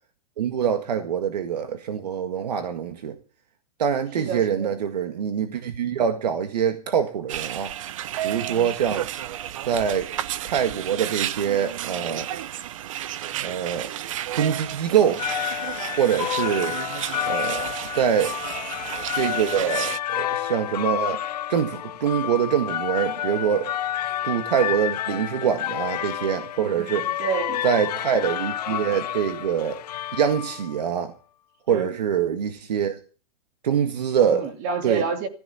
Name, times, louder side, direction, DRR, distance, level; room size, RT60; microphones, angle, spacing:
voice 1, 0.4-3.2 3.8-7.7 8.2-9.1 9.6-10.1 10.4-12.3 13.3-13.9 14.4-15.2 16.0-16.8 17.3-18.3 19.1-21.2 21.5-23.7 24.2-27.1 27.6-29.8 30.1-31.1 31.7-33.0 33.6-34.4 34.8-35.0, right 8 dB, 90° right, 1.8 m, -24 dB
voice 2, 4.2-4.8 26.8-27.6 31.7-32.0 34.2-35.3, right 6 dB, 35° right, 2.5 m, -29 dB
sound 1, 7.3-20.0, right 12 dB, 55° right, 0.7 m, -32 dB
sound 2, 15.0-30.8, left 12 dB, 85° left, 0.7 m, -30 dB
15.5 x 13.5 x 5.6 m
supercardioid pair, 170°, 20 cm